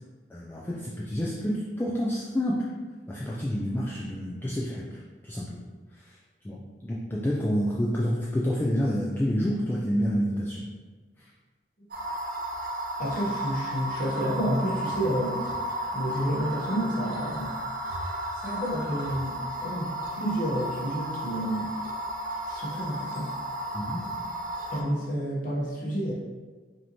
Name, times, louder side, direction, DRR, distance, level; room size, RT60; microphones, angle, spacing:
voice 1, 0.3-2.7 3.1-5.6 5.9-6.2 6.4-10.7 11.2-11.3 23.7-24.0, equal, 10° left, -5 dB, 0.3 m, -29 dB
sound 1, 11.9-24.8, right 1 dB, 50° right, 0.7 m, -34 dB
voice 2, 13.0-15.5 15.9-17.5 18.3-21.8 22.5-23.3 24.7-26.1, equal, 45° left, -5 dB, 1.1 m, -30 dB
5.3 x 2.8 x 2.9 m, 1.4 s
head